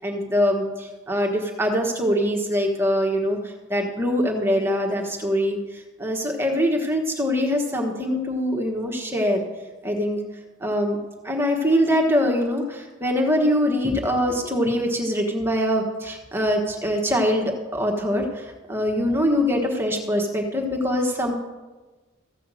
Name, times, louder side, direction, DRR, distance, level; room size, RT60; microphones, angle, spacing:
voice 1, 0.0-9.4 9.8-10.2 10.6-11.0 11.2-21.3, equal, 10° right, 1 dB, 1.3 m, -23 dB
15.0 x 5.7 x 7.6 m, 1.2 s
head